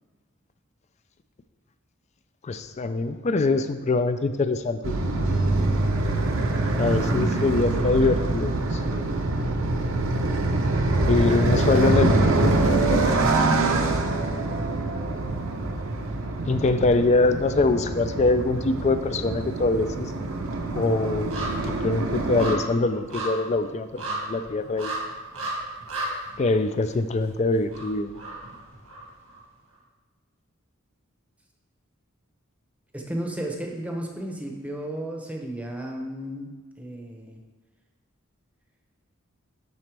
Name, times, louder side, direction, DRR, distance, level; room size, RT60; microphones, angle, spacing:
voice 1, 2.4-4.9 6.8-9.0 11.0-12.5 16.5-20.3 20.7-21.4 21.6-24.9 26.4-28.1, left 3 dB, 35° left, 10 dB, 0.4 m, -24 dB
sound 1, 4.8-22.5, right 2 dB, 70° right, 0.8 m, -24 dB
sound 2, 19.4-29.4 29.7-29.8, right 1 dB, 85° right, 1.8 m, -36 dB
voice 2, 32.9-36.5 36.8-37.4, right 1 dB, 5° right, 0 dB, 0.8 m, -33 dB
12.0 x 4.0 x 3.4 m, 1.4 s
head